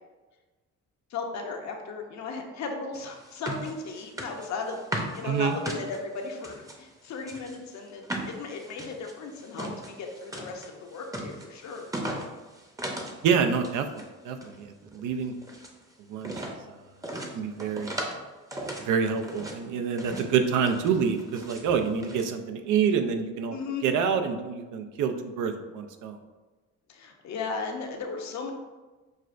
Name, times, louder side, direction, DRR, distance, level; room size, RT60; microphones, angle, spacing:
voice 1, 1.1-11.9 23.5-23.8 26.9-28.5, left 4 dB, 65° left, 3 dB, 0.7 m, -36 dB
sound 1, 2.9-6.8 7.2-13.2 13.5-14.1 14.3-15.8 16.2-16.6 17.0-18.2 18.5-19.6 20.0-20.3 20.6-21.6 22.0-22.3, right 1 dB, 10° right, 0.6 m, -37 dB
voice 2, 5.2-5.6 13.2-15.3 16.1-16.8 17.3-18.0 18.8-23.6 23.8-26.2, right 6 dB, 85° right, 6 dB, 0.5 m, -27 dB
6.3 x 2.4 x 2.5 m, 1.2 s
cardioid pair, 90°, 30 cm